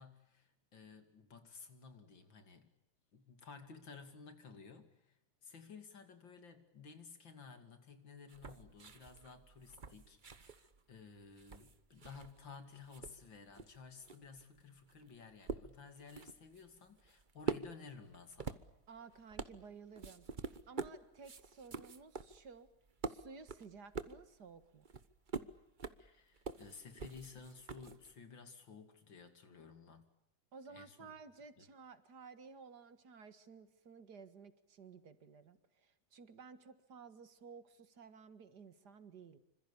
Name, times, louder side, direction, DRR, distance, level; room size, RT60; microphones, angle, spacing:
voice 1, 0.0-2.7 3.1-5.2 5.4-18.6 26.0-30.1 30.7-31.1 31.6-31.7, left 5 dB, 75° left, 8 dB, 3.3 m, -55 dB
sound 1, 8.3-12.6 12.8-28.2, right 4 dB, 35° right, 0.9 m, -46 dB
voice 2, 18.9-22.7 23.0-24.8 30.5-39.4, right 5 dB, 60° right, 11 dB, 2.3 m, -55 dB
26.5 x 26.0 x 7.0 m, 0.81 s
omnidirectional pair, 2.1 m